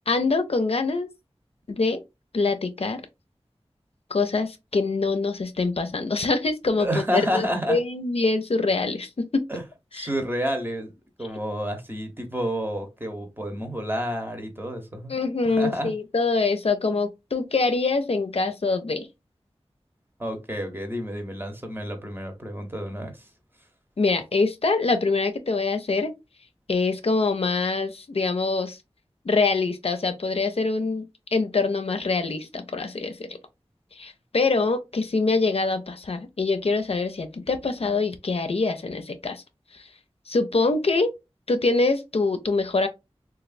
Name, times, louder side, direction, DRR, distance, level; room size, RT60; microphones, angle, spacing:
voice 1, 0.1-1.1 1.7-2.0 2.3-3.0 4.1-9.5 9.9-10.1 15.1-19.1 24.0-26.1 26.7-28.8 29.2-31.1 31.3-33.4 33.9-39.4 39.7-39.9 40.3-41.1 41.5-42.9, left 3 dB, 65° left, 0.4 m, -24 dB
voice 2, 6.8-7.8 9.5-9.6 9.9-10.9 11.2-15.2 15.4-15.9 20.2-23.3, equal, 20° right, 0.8 m, -29 dB
3.1 x 2.4 x 2.5 m
wide cardioid pair, 45°, 11 cm